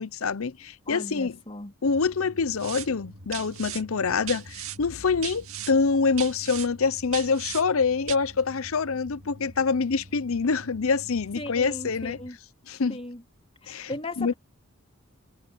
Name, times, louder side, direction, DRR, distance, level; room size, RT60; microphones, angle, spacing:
voice 1, 0.0-1.4 1.8-12.2 12.7-13.0 13.7-13.9 14.2-14.3, left 5 dB, 70° left, 0.7 m, -26 dB
voice 2, 0.9-1.7 11.4-12.4 12.9-13.2 13.6-14.3, left 2 dB, 25° left, 3.5 m, -37 dB
sound 1, 1.8-12.3, equal, 55° right, 3.2 m, -48 dB
sound 2, 2.6-2.9 3.3-3.8 4.3-4.8 5.2-5.7 6.2-6.7 7.1-7.6 8.1-8.2, right 12 dB, 75° right, 2.1 m, -36 dB
head